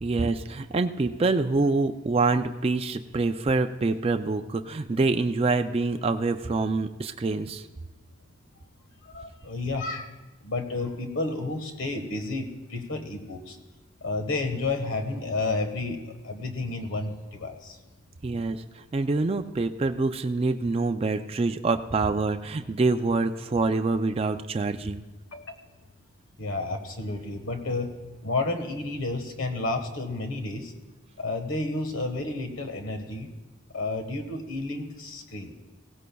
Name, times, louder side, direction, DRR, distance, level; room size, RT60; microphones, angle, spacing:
voice 1, 0.0-7.6 18.2-18.6 18.9-25.0, right 3 dB, 30° right, 7 dB, 0.4 m, -26 dB
voice 2, 9.0-10.1 10.4-13.6 14.0-17.8 25.3-25.6 26.4-27.9 28.2-30.7 31.2-33.3 33.7-35.5, left 2 dB, 75° left, 6 dB, 1.4 m, -31 dB
16.5 x 16.0 x 2.3 m, 1.1 s
head